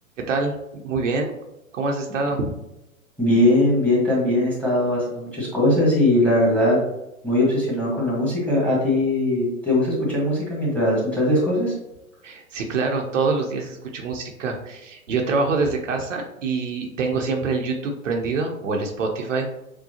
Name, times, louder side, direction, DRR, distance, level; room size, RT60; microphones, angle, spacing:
voice 1, 0.2-0.6 0.8-1.3 1.7-2.5 12.2-19.6, right 4 dB, 60° right, 2 dB, 0.8 m, -25 dB
voice 2, 3.2-6.8 7.2-11.7, left 1 dB, 5° left, -6 dB, 1.5 m, -20 dB
6.3 x 2.3 x 2.8 m, 0.91 s
figure-of-eight pair, 115°, 42 cm